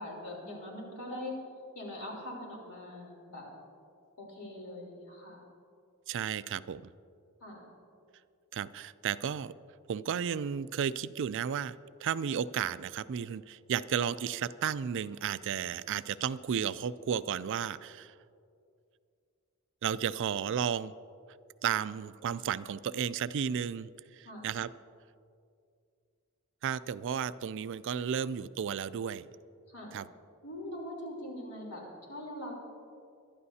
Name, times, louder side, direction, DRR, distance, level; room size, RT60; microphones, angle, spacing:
voice 1, 0.0-1.4 1.7-3.5 4.2-5.4 7.4-7.7 24.2-24.5 29.7-29.9 30.4-32.5, left 1 dB, 90° left, -2 dB, 3.7 m, -42 dB
voice 2, 6.1-6.9 8.5-9.5 9.9-11.8 12.0-18.1 19.8-20.9 21.6-24.7 26.6-29.3 29.9-30.1, right 8 dB, 60° right, 16 dB, 0.3 m, -33 dB
22.0 x 12.0 x 2.8 m, 2.4 s
head